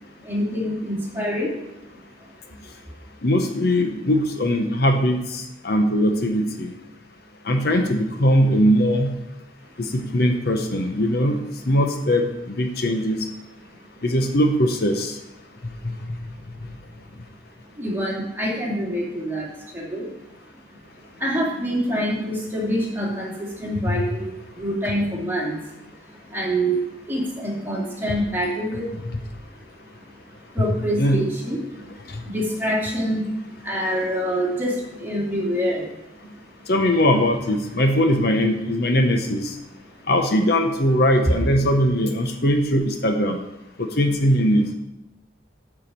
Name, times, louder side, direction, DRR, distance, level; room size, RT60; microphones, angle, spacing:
voice 1, 0.2-1.5 2.2-2.3 17.8-20.1 20.5-20.6 21.1-29.0 29.6-30.0 30.5-33.3 33.6-35.9 36.2-36.3, equal, 10° right, -4 dB, 2.4 m, -26 dB
voice 2, 3.2-6.7 7.5-9.1 9.8-13.2 14.0-15.2 15.8-15.9 23.9-24.0 24.8-24.9 28.1-28.2 31.0-31.3 32.1-32.2 36.7-39.5 40.1-43.4 43.8-44.7, equal, 60° left, 5 dB, 0.9 m, -20 dB
9.3 x 4.9 x 7.3 m, 0.91 s
head